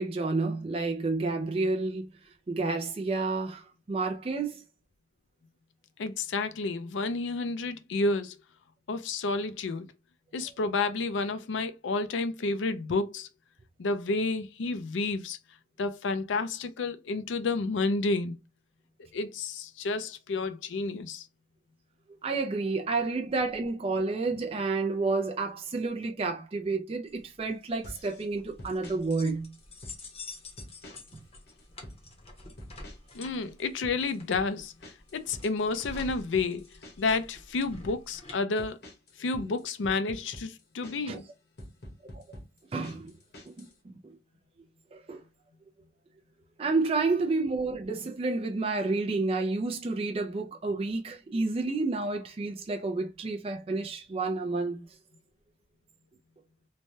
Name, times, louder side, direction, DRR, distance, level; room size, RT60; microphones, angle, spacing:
voice 1, 0.0-2.1 2.5-4.6 22.2-29.5 41.1-41.2 42.1-42.2 42.7-43.1 43.5-44.2 44.9-45.2 46.6-54.9, right 3 dB, 30° right, 0.4 m, -30 dB
voice 2, 6.0-8.3 8.9-9.9 10.3-13.3 13.8-15.4 15.8-18.4 19.1-21.3 33.1-34.7 35.1-36.7 37.0-38.8 39.2-41.2, left 3 dB, 85° left, 0.4 m, -30 dB
sound 1, 27.1-38.4, left 3 dB, 35° left, 0.7 m, -48 dB
sound 2, 27.8-28.3 28.6-29.0 29.6-30.2 30.6-31.2 31.5-32.0 32.6-33.2 33.4-37.2 37.6-38.0 38.6-41.2 41.6-43.7, equal, 60° left, 0.9 m, -46 dB
3.2 x 2.2 x 2.6 m
head